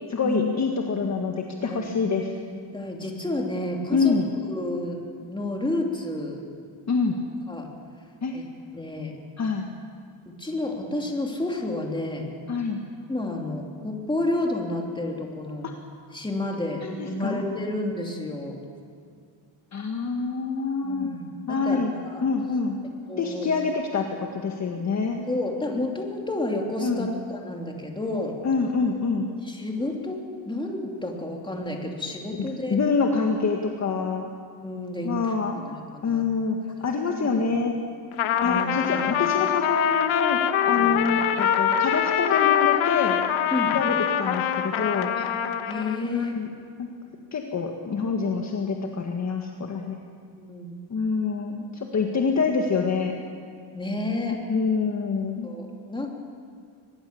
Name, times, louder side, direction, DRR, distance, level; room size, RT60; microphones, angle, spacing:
voice 1, 0.1-2.3 3.9-4.3 6.9-7.2 8.2-8.3 9.4-9.7 12.5-12.8 16.8-17.4 19.7-21.1 21.5-21.9 22.2-22.8 23.2-25.2 26.8-27.1 28.4-29.3 32.7-34.3 35.0-35.7 36.0-37.7 38.4-40.4 40.6-43.2 43.7-45.1 46.0-46.5 46.8-46.9 47.3-50.0 50.9-53.1 54.3-55.5, left 4 dB, 35° left, 2 dB, 1.7 m, -26 dB
voice 2, 2.5-4.1 4.5-5.0 5.2-6.4 7.5-7.7 8.3-8.4 8.7-9.2 10.4-12.3 13.1-15.7 16.1-18.6 20.8-22.2 23.1-23.5 25.3-28.4 29.4-32.8 34.6-35.1 35.5-36.2 36.9-37.3 38.4-39.0 43.5-43.7 45.1-45.3 45.7-46.3 49.8-49.9 50.4-50.8 53.7-54.4 55.4-56.2, left 2 dB, 10° left, 0 dB, 3.2 m, -30 dB
Trumpet, 38.1-46.0, left 10 dB, 90° left, 1.4 m, -24 dB
24.5 x 21.0 x 7.1 m, 2.1 s
cardioid pair, 135°, 46 cm